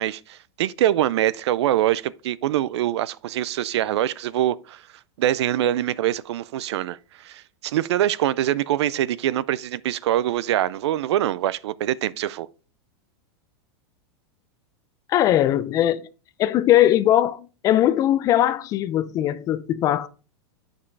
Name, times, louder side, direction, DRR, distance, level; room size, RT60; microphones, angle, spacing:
voice 1, 0.0-4.8 5.2-12.5, right 12 dB, 80° right, 0.4 m, -24 dB
voice 2, 15.1-16.1 16.4-20.1, left 12 dB, 25° left, 0.3 m, -20 dB
8.4 x 5.3 x 3.2 m
supercardioid pair, 150°, 14 cm